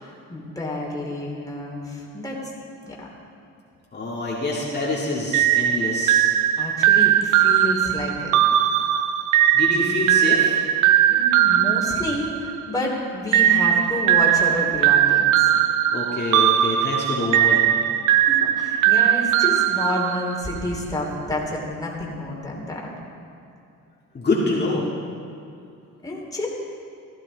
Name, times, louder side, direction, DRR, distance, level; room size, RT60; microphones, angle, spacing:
voice 1, 0.0-2.4 2.8-3.1 6.6-8.3 11.1-15.5 18.1-22.9 26.0-26.5, left 1 dB, 10° left, -2 dB, 2.9 m, -29 dB
voice 2, 3.9-6.3 9.5-10.6 15.9-17.7 24.1-24.8, left 2 dB, 35° left, -6 dB, 2.2 m, -26 dB
sound 1, 5.3-12.8 13.3-20.6, right 11 dB, 90° right, 0.5 m, -19 dB
15.5 x 12.0 x 4.0 m, 2.6 s
cardioid pair, 90°, 30 cm